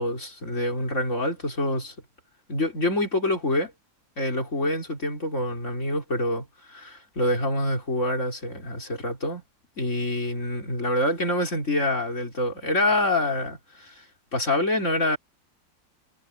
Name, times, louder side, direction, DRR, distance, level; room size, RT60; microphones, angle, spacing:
voice 1, 0.0-1.9 2.5-3.7 4.2-9.4 9.8-14.1 14.3-15.2, left 1 dB, 40° left, 4.9 m, -26 dB
omnidirectional pair, 2.0 m